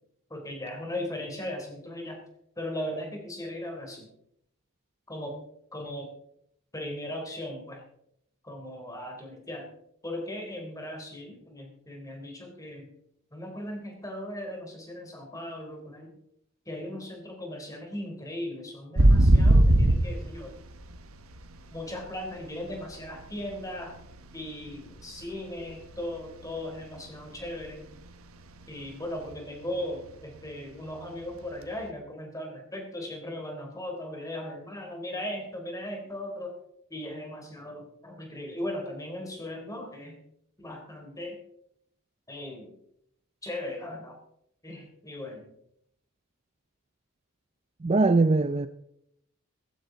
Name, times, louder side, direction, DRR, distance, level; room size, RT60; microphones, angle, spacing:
voice 1, 0.3-2.2 2.6-4.1 5.1-5.4 5.7-6.1 6.7-7.8 8.4-9.7 10.0-12.9 13.3-16.1 16.7-20.5 21.7-23.9 24.3-27.9 28.7-36.5 36.9-40.2 40.6-41.4 42.3-42.8 43.4-44.2 44.6-45.5, left 1 dB, 15° left, 3.5 m, -38 dB
sound 1, 19.0-22.3 22.6-24.9 25.2-25.5 25.8-27.7 28.1-28.2 28.5-28.9 29.2-29.3 31.5-31.6, right 1 dB, 80° right, 1.3 m, -21 dB
voice 2, 47.8-48.7, right 3 dB, 30° right, 0.4 m, -21 dB
15.5 x 15.0 x 3.9 m
head